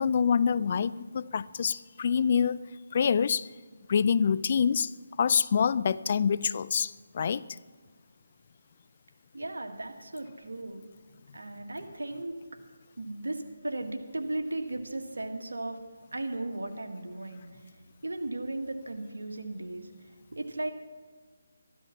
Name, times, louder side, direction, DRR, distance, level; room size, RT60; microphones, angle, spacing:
voice 1, 0.0-2.6 2.9-3.5 3.9-4.9 5.2-7.4, left 6 dB, 45° left, 18 dB, 0.4 m, -26 dB
voice 2, 9.3-10.8 11.3-12.6 13.0-15.8 16.1-17.4 18.0-19.9 20.3-20.7, right 2 dB, 85° right, 4 dB, 1.9 m, -36 dB
13.5 x 12.0 x 6.0 m, 1.5 s
figure-of-eight pair, 160°, 0 cm